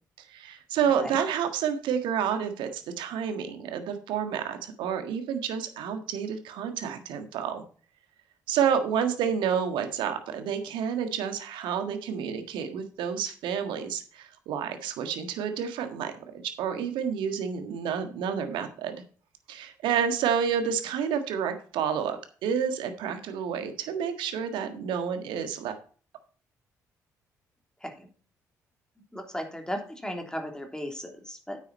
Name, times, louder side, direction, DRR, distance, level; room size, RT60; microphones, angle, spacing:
voice 1, 0.2-7.6 8.5-19.0 19.5-25.8, right 7 dB, 65° right, 7 dB, 1.6 m, -29 dB
voice 2, 29.1-31.6, equal, 10° left, 3 dB, 3.3 m, -36 dB
9.5 x 8.2 x 4.3 m, 0.40 s
figure-of-eight pair, 45°, 9 cm